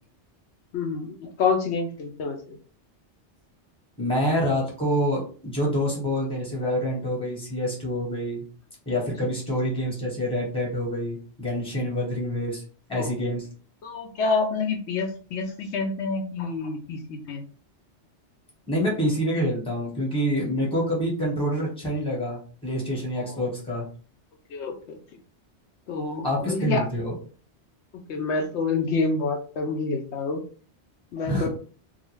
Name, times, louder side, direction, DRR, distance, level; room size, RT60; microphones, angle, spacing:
voice 1, 0.7-2.6 12.9-13.1 13.8-17.4 23.2-23.4 24.5-25.0 25.9-26.8 27.9-30.4 31.1-31.5, left 4 dB, 75° left, 3 dB, 0.8 m, -28 dB
voice 2, 4.0-8.4 8.9-12.6 12.9-13.5 18.7-23.8 26.2-27.2 31.2-31.5, equal, 5° left, -2 dB, 1.0 m, -27 dB
2.5 x 2.3 x 3.0 m, 0.40 s
omnidirectional pair, 1.2 m